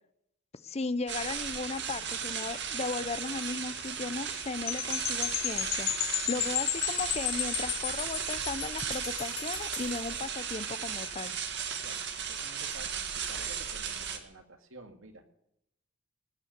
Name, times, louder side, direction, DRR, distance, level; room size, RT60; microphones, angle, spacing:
voice 1, 0.6-11.4, left 3 dB, 30° left, 15 dB, 0.7 m, -36 dB
sound 1, 1.1-14.2, right 7 dB, 60° right, 1.9 m, -36 dB
sound 2, 4.7-10.0, left 13 dB, 75° left, 1.0 m, -33 dB
voice 2, 11.8-15.3, right 2 dB, 90° right, 6 dB, 2.2 m, -51 dB
19.0 x 9.8 x 6.6 m, 0.77 s
head